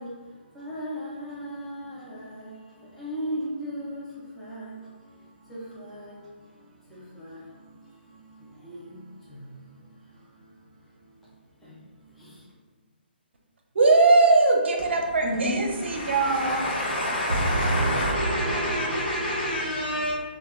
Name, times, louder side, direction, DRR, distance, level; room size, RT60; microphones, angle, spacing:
voice 1, 0.0-12.5, equal, ahead, 0.4 m, -39 dB
voice 2, 13.7-16.7 17.3-19.6, right 3 dB, 80° right, 0.5 m, -22 dB
voice 3, 15.2-20.1, left 1 dB, 55° left, 1.1 m, -28 dB
2.2 x 2.1 x 3.5 m
hypercardioid pair, 160°, 6 cm